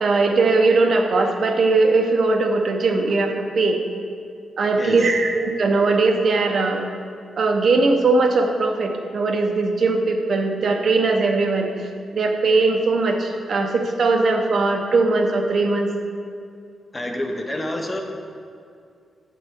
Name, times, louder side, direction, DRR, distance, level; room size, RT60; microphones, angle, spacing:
voice 1, 0.0-3.8 4.6-6.8 7.4-11.7 12.1-15.9, right 3 dB, 45° right, 3 dB, 0.7 m, -19 dB
voice 2, 16.9-18.0, left 1 dB, 15° left, 3 dB, 0.7 m, -27 dB
8.4 x 7.8 x 3.5 m, 2.3 s
wide cardioid pair, 175°, 0 cm